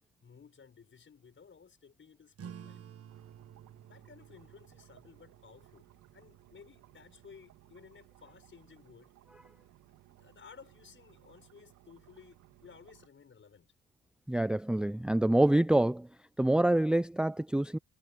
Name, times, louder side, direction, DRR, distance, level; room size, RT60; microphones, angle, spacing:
voice 1, 0.2-2.8 3.9-5.9 6.1-9.1 10.2-13.7, left 6 dB, 40° left, 6.2 m, -56 dB
sound 1, 2.3-7.4, right 8 dB, 50° right, 1.4 m, -53 dB
sound 2, 3.1-13.1, right 14 dB, 85° right, 2.7 m, -61 dB
voice 2, 14.3-16.1 16.4-17.8, right 1 dB, 5° right, 0.5 m, -26 dB
cardioid pair, 90°, 30 cm